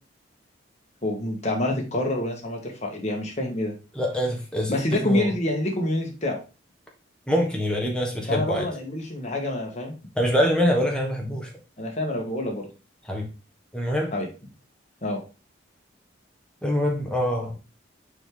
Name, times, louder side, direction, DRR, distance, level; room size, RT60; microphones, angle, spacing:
voice 1, 1.0-3.7 4.7-6.4 8.3-9.9 11.8-12.7 14.1-14.3 15.0-15.2, left 1 dB, 35° left, 1 dB, 1.8 m, -27 dB
voice 2, 3.9-4.7 5.0-5.3 7.3-8.7 10.2-11.5 13.1-13.3 13.7-14.1 16.6-17.6, equal, 5° left, 0 dB, 1.5 m, -24 dB
6.6 x 4.7 x 3.9 m, 0.32 s
head